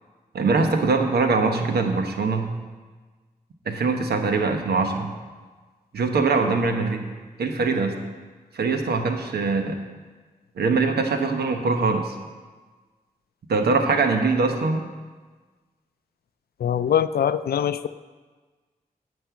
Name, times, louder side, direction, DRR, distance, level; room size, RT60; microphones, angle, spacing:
voice 1, 0.3-2.5 3.7-5.1 5.9-7.0 7.4-7.9 8.5-9.8 10.6-12.2 13.5-14.8, right 4 dB, 85° right, 5 dB, 1.1 m, -22 dB
voice 2, 16.6-17.9, left 9 dB, 75° left, 14 dB, 0.4 m, -23 dB
9.3 x 5.4 x 8.2 m, 1.4 s
cardioid pair, 45°, 16 cm